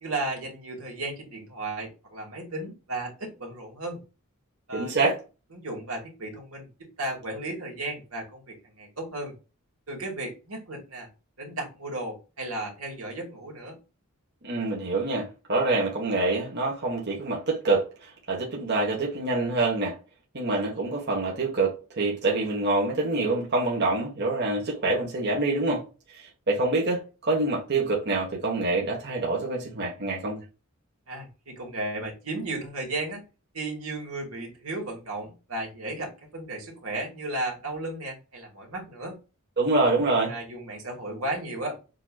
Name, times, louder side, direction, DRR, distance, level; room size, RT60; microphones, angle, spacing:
voice 1, 0.0-4.0 4.7-5.1 5.5-9.3 9.9-11.1 11.4-13.8 31.1-33.2 33.5-39.2 40.3-41.8, right 2 dB, 80° right, 2.3 m, -34 dB
voice 2, 4.7-5.1 14.4-20.0 20.3-30.4 39.6-40.3, right 2 dB, 50° right, 1.5 m, -26 dB
7.2 x 2.9 x 2.4 m
head